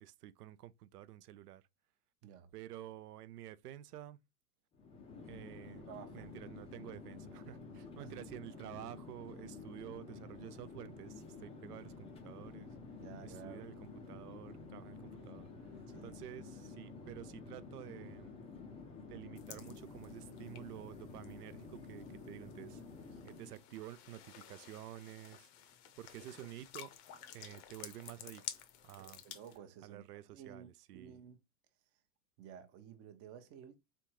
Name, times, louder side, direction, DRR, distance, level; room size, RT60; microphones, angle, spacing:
voice 1, 0.0-1.6 2.5-4.2 5.2-5.9 6.1-12.8 13.2-18.3 19.1-22.8 23.2-25.5 26.0-26.9 27.3-29.2 29.8-31.2, right 13 dB, 65° right, 0.7 m, -50 dB
voice 2, 2.2-2.5 5.9-6.3 8.0-8.1 13.0-13.7 15.9-16.1 23.1-23.2 29.0-31.4 32.4-33.7, right 8 dB, 30° right, 0.8 m, -53 dB
Chatter / Fixed-wing aircraft airplane, 4.7-23.7, left 4 dB, 10° left, 0.5 m, -50 dB
sound 1, 19.4-29.6, left 10 dB, 40° left, 0.8 m, -53 dB
3.8 x 3.4 x 2.9 m
hypercardioid pair, 110°, 50 cm